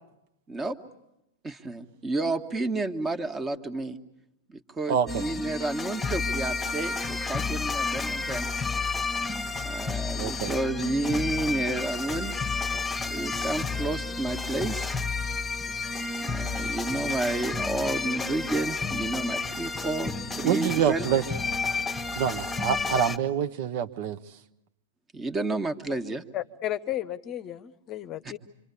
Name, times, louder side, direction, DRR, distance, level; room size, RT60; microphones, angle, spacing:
voice 1, 1.4-4.0 4.5-8.5 9.6-12.4 13.1-14.9 16.2-21.1 25.1-26.2, right 2 dB, 15° right, 8 dB, 1.7 m, -31 dB
voice 2, 4.9-5.3 10.2-10.5 20.4-21.2 22.2-24.2, right 8 dB, 45° right, 9 dB, 1.2 m, -26 dB
sound 1, 5.1-23.2, left 4 dB, 10° left, 1.6 m, -31 dB
voice 3, 26.3-28.4, left 13 dB, 30° left, 12 dB, 1.0 m, -33 dB
26.5 x 26.0 x 8.5 m, 0.87 s
figure-of-eight pair, 100°, 0 cm